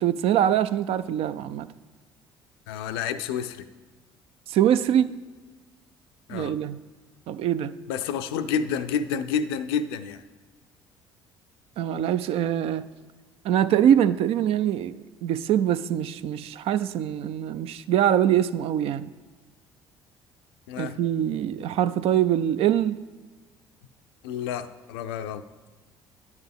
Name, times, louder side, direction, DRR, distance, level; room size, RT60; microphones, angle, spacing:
voice 1, 0.0-1.7 4.5-5.1 6.3-6.8 7.3-7.7 11.8-12.9 13.4-15.0 15.2-19.1 20.8-23.0, right 10 dB, 50° right, 0.4 m, -23 dB
voice 2, 2.7-3.7 6.3-6.5 7.9-10.2 20.7-21.0 24.2-25.4, left 7 dB, 70° left, 0.5 m, -29 dB
9.6 x 9.3 x 3.5 m
figure-of-eight pair, 55°, 13 cm